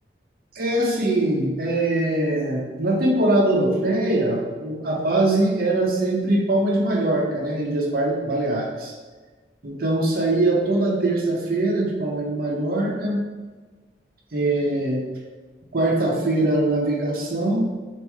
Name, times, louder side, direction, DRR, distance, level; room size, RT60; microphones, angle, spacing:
voice 1, 0.5-8.9 9.6-13.2 14.3-15.0 15.7-17.7, right 2 dB, 55° right, -2 dB, 0.7 m, -22 dB
3.4 x 2.6 x 3.1 m, 1.3 s
head